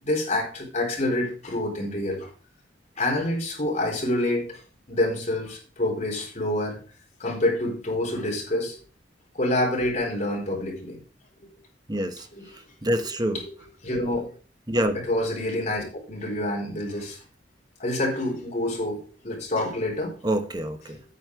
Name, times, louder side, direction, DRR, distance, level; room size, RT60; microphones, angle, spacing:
voice 1, 0.0-2.3 3.0-4.6 4.9-6.8 7.2-8.8 9.3-11.0 11.4-11.5 12.3-12.5 13.3-14.3 14.9-17.2 17.8-20.1 20.9-21.0, left 1 dB, 40° left, 4.2 m, -27 dB
voice 2, 11.9-12.3 12.8-13.4 14.7-15.0 20.2-21.0, right 1 dB, 25° right, 1.1 m, -26 dB
9.1 x 7.6 x 4.7 m
head